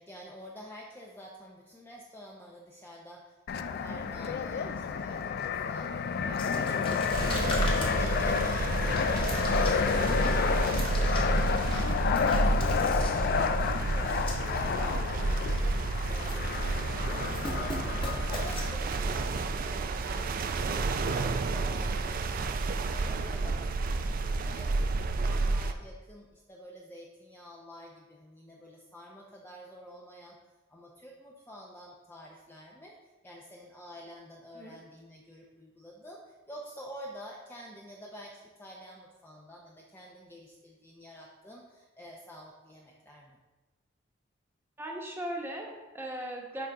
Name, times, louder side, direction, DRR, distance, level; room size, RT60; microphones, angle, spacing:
voice 1, 0.0-7.0 7.3-22.5 22.8-30.4 30.7-33.0 33.2-36.2 36.5-43.4, equal, 10° left, -3 dB, 0.6 m, -48 dB
Fixed-wing aircraft airplane, 3.5-18.7, left 6 dB, 55° left, 0.3 m, -30 dB
sound 1, 6.4-14.7 15.0-15.1 15.4-15.7 16.0-16.8 17.0-19.4, left 2 dB, 30° left, 1.3 m, -40 dB
voice 2, 6.5-6.8 13.8-14.6 17.7-18.0 34.5-34.7 44.8-46.7, right 1 dB, 10° right, -1 dB, 1.1 m, -40 dB
sound 2, 7.1-25.7, right 3 dB, 45° right, 0.4 m, -30 dB
6.8 x 3.8 x 4.8 m, 1.2 s
head